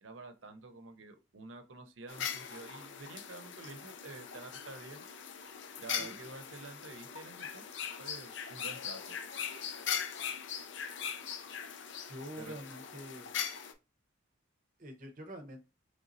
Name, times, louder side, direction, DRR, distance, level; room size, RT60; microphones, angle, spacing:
voice 1, 0.0-5.1 5.8-7.7 8.0-9.2 12.4-12.6, right 3 dB, 80° right, 0.6 m, -49 dB
sound 1, 2.1-13.7, left 8 dB, 70° left, 0.5 m, -40 dB
voice 2, 12.1-13.3 14.8-15.6, equal, 40° right, 0.8 m, -46 dB
4.0 x 3.3 x 2.6 m
head